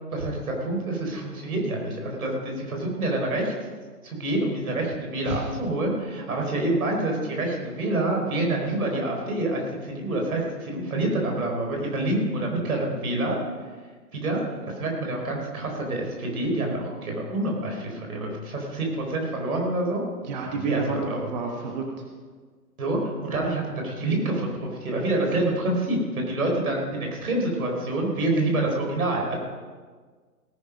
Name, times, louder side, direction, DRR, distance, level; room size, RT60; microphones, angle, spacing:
voice 1, 0.1-3.5 4.0-13.3 14.1-14.4 14.8-20.0 20.6-21.2 22.8-29.4, right 2 dB, 60° right, 1 dB, 4.8 m, -27 dB
voice 2, 20.2-22.0 26.9-27.1, right 4 dB, 30° right, 2 dB, 1.3 m, -30 dB
17.5 x 10.0 x 5.3 m, 1.5 s
hypercardioid pair, 150°, 48 cm